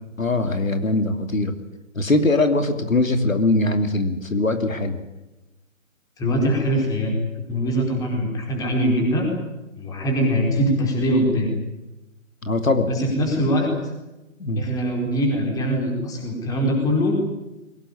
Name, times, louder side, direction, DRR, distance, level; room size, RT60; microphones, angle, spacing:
voice 1, 0.2-1.5 1.9-5.0 12.4-12.9 14.4-14.6, left 2 dB, 75° left, 7 dB, 3.0 m, -21 dB
voice 2, 6.2-7.1 7.5-9.4 9.8-11.5 12.8-13.7 14.5-17.1, equal, 10° left, 1 dB, 4.6 m, -22 dB
22.0 x 19.0 x 10.0 m, 1.0 s
figure-of-eight pair, 145°, 40 cm